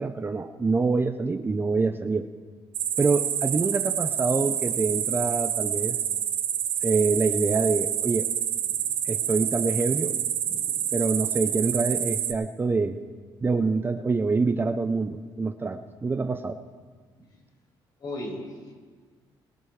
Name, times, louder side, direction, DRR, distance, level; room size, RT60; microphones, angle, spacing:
voice 1, 0.0-2.3 3.0-6.0 6.8-8.3 9.0-10.2 10.9-13.0 13.4-16.6, right 4 dB, 25° right, 8 dB, 0.7 m, -26 dB
sound 1, 2.7-12.3, right 10 dB, 80° right, 1.2 m, -28 dB
voice 2, 18.0-18.7, left 1 dB, 50° left, -1 dB, 5.1 m, -36 dB
21.0 x 15.0 x 3.3 m, 1.5 s
cardioid pair, 95°, 9 cm